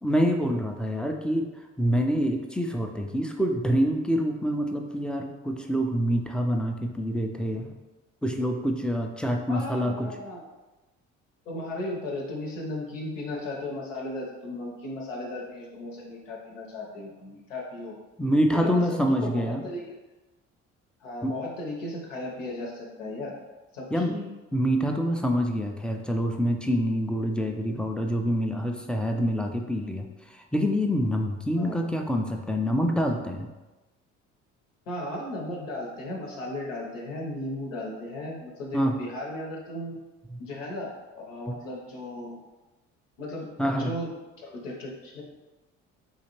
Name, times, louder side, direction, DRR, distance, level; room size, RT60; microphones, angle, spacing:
voice 1, 0.0-1.5 1.8-7.8 8.2-10.1 18.2-19.6 21.2-21.3 23.9-24.2 24.5-33.5 38.7-39.0 40.3-40.4 41.5-41.6 43.6-43.9, equal, 5° left, 3 dB, 0.4 m, -26 dB
voice 2, 9.5-10.4 11.5-18.0 18.5-18.8 19.1-19.9 21.0-23.3 23.7-24.3 31.6-31.8 34.9-40.0 40.4-42.4 43.2-44.1 44.4-45.2, left 1 dB, 85° left, -2 dB, 0.8 m, -36 dB
4.0 x 2.7 x 2.9 m, 1.1 s
hypercardioid pair, 55°, 37 cm